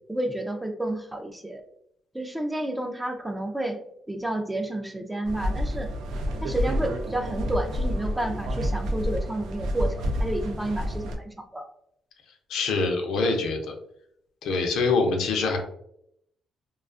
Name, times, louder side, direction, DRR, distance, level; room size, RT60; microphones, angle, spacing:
voice 1, 0.1-1.6 2.1-3.8 4.1-5.9 6.4-11.7, right 1 dB, 10° right, 5 dB, 0.3 m, -30 dB
sound 1, 5.2-11.2, equal, 80° right, 0.3 m, -29 dB
voice 2, 12.5-13.7 14.4-15.6, left 3 dB, 80° left, 2 dB, 0.5 m, -24 dB
2.4 x 2.3 x 2.4 m, 0.72 s
cardioid pair, 90°, 0 cm